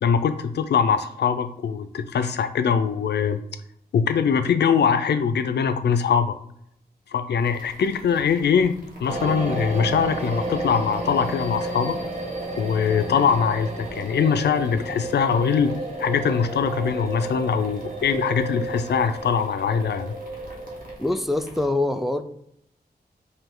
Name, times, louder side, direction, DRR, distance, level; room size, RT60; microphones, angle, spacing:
voice 1, 0.0-3.4 3.9-6.3 7.1-12.0 12.6-15.7 16.0-20.1, left 6 dB, 85° left, 0.4 m, -22 dB
sound 1, 7.4-21.6, equal, 55° right, 1.3 m, -47 dB
sound 2, 9.1-21.0, right 2 dB, 40° right, 1.0 m, -32 dB
voice 2, 21.0-22.2, left 2 dB, ahead, 0.3 m, -24 dB
5.0 x 2.7 x 3.7 m
wide cardioid pair, 120°, 17 cm